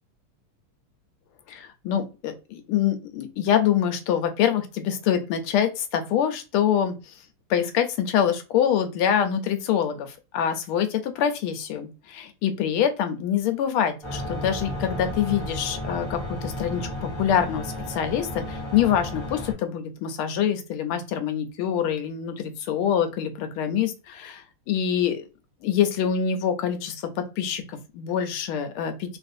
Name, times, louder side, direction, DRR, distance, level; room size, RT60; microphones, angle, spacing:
voice 1, 1.5-7.2 7.5-25.2 25.6-29.2, left 9 dB, 80° left, 7 dB, 1.4 m, -25 dB
sound 1, 14.0-19.5, left 1 dB, 25° left, 0.6 m, -33 dB
3.7 x 2.4 x 2.5 m, 0.30 s
omnidirectional pair, 2.4 m